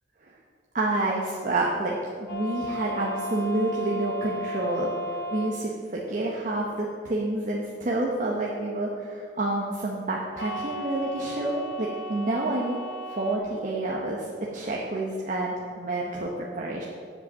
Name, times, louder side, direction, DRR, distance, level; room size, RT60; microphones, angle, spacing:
voice 1, 0.7-4.9 5.3-12.8 13.2-14.3 14.5-16.8, right 2 dB, 45° right, -3 dB, 0.8 m, -28 dB
sound 1, 2.3-5.5 10.4-13.4, equal, 60° left, 1.0 m, -35 dB
7.7 x 5.5 x 7.2 m, 2.1 s
head